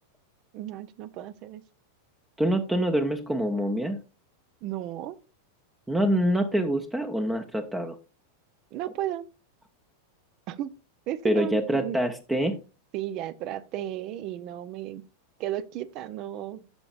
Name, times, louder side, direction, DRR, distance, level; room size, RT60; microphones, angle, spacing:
voice 1, 0.5-1.6 4.6-5.2 8.7-9.3 10.5-10.7 11.1-12.0 12.9-15.0 15.4-16.6, right 12 dB, 40° right, 0.6 m, -34 dB
voice 2, 2.4-4.0 5.9-7.9 11.2-12.6, equal, 10° right, 0.8 m, -25 dB
12.5 x 6.8 x 2.4 m
figure-of-eight pair, 90°, 0 cm